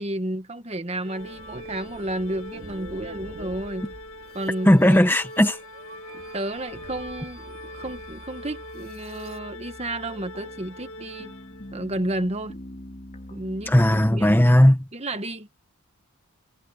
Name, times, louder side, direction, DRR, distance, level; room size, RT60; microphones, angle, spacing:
voice 1, 0.0-3.9 4.3-5.0 6.3-11.3 11.7-12.5 13.3-13.8 14.1-14.3 14.9-15.6, right 1 dB, 30° right, 1.5 m, -31 dB
Organ, 1.0-11.9, left 1 dB, 60° left, 2.4 m, -42 dB
sound 1, 1.2-9.4, right 2 dB, 45° right, 3.0 m, -45 dB
voice 2, 4.6-5.6 13.7-14.9, equal, 10° left, 1.2 m, -17 dB
sound 2, 6.7-14.4, left 1 dB, 35° left, 3.3 m, -43 dB
head